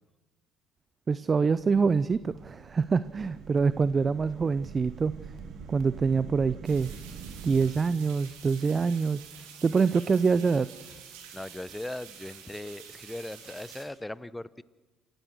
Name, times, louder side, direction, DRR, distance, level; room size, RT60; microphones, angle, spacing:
voice 1, 1.1-5.1 5.7-6.9 7.4-9.2 9.6-10.7, right 5 dB, 35° right, 16 dB, 0.6 m, -25 dB
sound 1, 1.5-7.7, right 6 dB, 60° right, 2.2 m, -44 dB
sound 2, 6.6-13.8, right 8 dB, 80° right, 3.5 m, -48 dB
voice 2, 11.3-14.6, left 1 dB, 10° left, 18 dB, 0.8 m, -39 dB
28.5 x 15.5 x 6.5 m, 1.2 s
hypercardioid pair, 60°, 0 cm